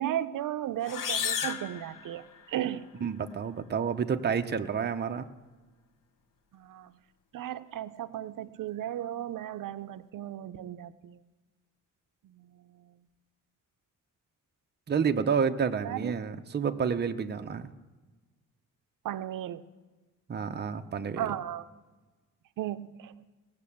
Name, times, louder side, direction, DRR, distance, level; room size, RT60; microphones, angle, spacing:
voice 1, 0.0-2.9 6.5-6.9 7.3-11.2 12.4-12.5 15.8-16.1 19.0-19.6 21.2-21.6 22.6-23.1, right 12 dB, 85° right, 13 dB, 0.6 m, -35 dB
sound 1, 0.8-2.7, left 7 dB, 90° left, 0.9 m, -33 dB
voice 2, 3.0-5.3 14.9-17.7 20.3-21.3, right 6 dB, 35° right, 7 dB, 0.6 m, -29 dB
18.0 x 6.7 x 8.5 m, 1.2 s
wide cardioid pair, 155°, 31 cm